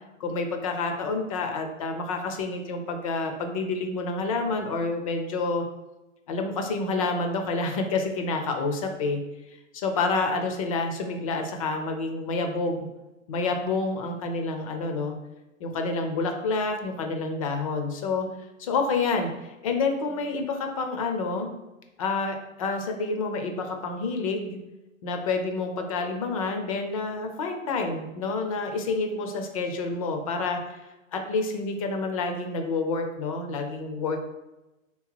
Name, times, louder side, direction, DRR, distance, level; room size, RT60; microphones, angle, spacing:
voice 1, 0.2-5.6 6.3-9.2 9.5-12.8 13.3-15.2 15.6-18.3 18.6-21.5 22.0-24.6 25.0-30.8 31.1-34.2, left 3 dB, 30° left, 5 dB, 0.4 m, -28 dB
3.3 x 2.9 x 4.4 m, 1.0 s
figure-of-eight pair, 110°, 40 cm